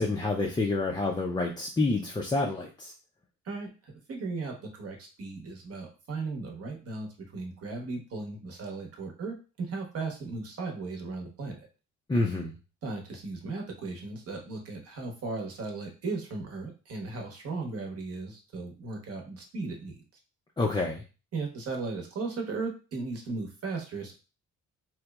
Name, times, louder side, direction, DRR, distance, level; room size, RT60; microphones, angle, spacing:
voice 1, 0.0-2.9 12.1-12.6 20.6-21.0, left 2 dB, 15° left, -1 dB, 0.3 m, -28 dB
voice 2, 3.4-11.7 12.8-20.0 21.3-24.1, right 3 dB, 50° right, 2 dB, 0.9 m, -36 dB
2.9 x 2.1 x 2.2 m, 0.32 s
cardioid pair, 90°, 30 cm